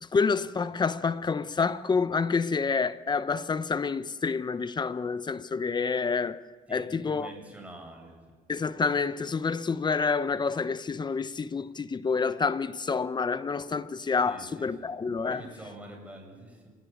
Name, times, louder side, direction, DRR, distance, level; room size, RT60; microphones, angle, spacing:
voice 1, 0.0-6.4 6.7-7.3 8.5-15.4, left 5 dB, 25° left, 0.9 m, -28 dB
voice 2, 6.7-8.2 14.2-14.9 15.2-16.7, right 1 dB, 10° right, 7.5 m, -46 dB
28.5 x 17.0 x 9.2 m
cardioid pair, 110°, 17 cm